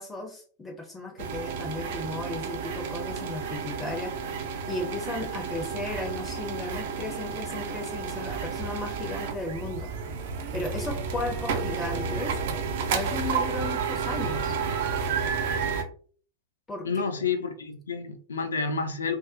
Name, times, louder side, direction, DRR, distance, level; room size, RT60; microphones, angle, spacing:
voice 1, 0.0-4.3 4.7-10.1 10.5-12.4 12.9-14.5 16.7-16.9, left 2 dB, 10° left, 2 dB, 0.5 m, -35 dB
sound 1, 1.2-15.8, right 5 dB, 55° right, 0.4 m, -31 dB
voice 2, 16.8-19.2, left 5 dB, 70° left, 7 dB, 0.4 m, -29 dB
2.6 x 2.0 x 2.4 m, 0.44 s
figure-of-eight pair, 90°, 0 cm